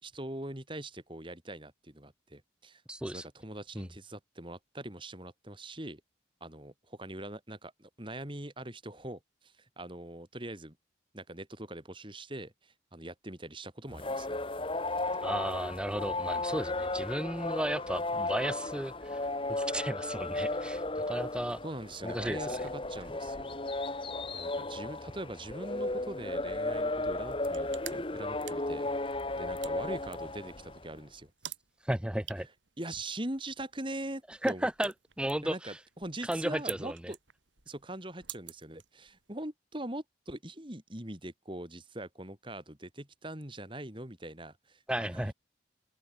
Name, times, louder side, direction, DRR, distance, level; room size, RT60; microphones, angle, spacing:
voice 1, 0.0-2.8 3.1-6.0 6.4-10.8 11.1-14.4 21.6-23.6 24.0-24.1 24.3-28.9 29.3-31.3 32.8-34.7 35.4-35.7 36.0-37.2 37.7-45.3, right 1 dB, 25° right, 3.8 m, -42 dB
voice 2, 2.9-3.3 3.8-3.9 15.2-21.6 22.0-22.7 31.8-32.5 34.3-35.8 36.2-37.1 44.9-45.3, right 1 dB, 5° right, 0.7 m, -34 dB
sound 1, 13.9-30.9, left 2 dB, 30° left, 1.3 m, -35 dB
sound 2, 27.3-39.4, right 14 dB, 85° right, 3.6 m, -50 dB
open air
head